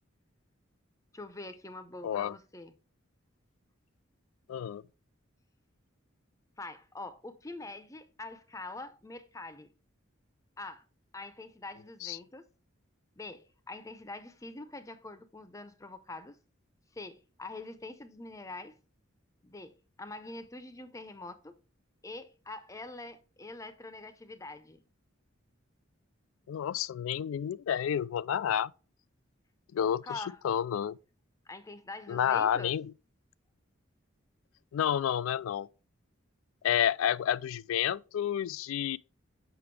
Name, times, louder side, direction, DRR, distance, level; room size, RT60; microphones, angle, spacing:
voice 1, 1.1-2.7 6.6-9.7 10.6-10.8 11.1-12.5 13.2-16.4 16.9-18.8 19.4-21.6 22.0-24.8 30.0-30.4 31.5-32.7, left 2 dB, 15° left, 0.6 m, -44 dB
voice 2, 2.0-2.3 4.5-4.8 12.0-12.2 26.5-28.7 29.7-31.0 32.1-32.9 34.7-35.7 36.6-39.0, left 9 dB, 85° left, 0.3 m, -30 dB
6.9 x 5.8 x 3.2 m
head